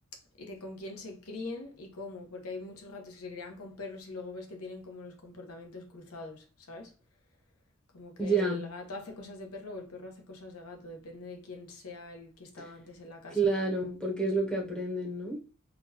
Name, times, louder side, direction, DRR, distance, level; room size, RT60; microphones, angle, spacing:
voice 1, 0.4-6.9 7.9-13.4, left 2 dB, 85° left, 0.9 m, -43 dB
voice 2, 8.2-8.6 13.3-15.4, right 3 dB, 5° left, 0.7 m, -29 dB
3.8 x 2.3 x 2.7 m
head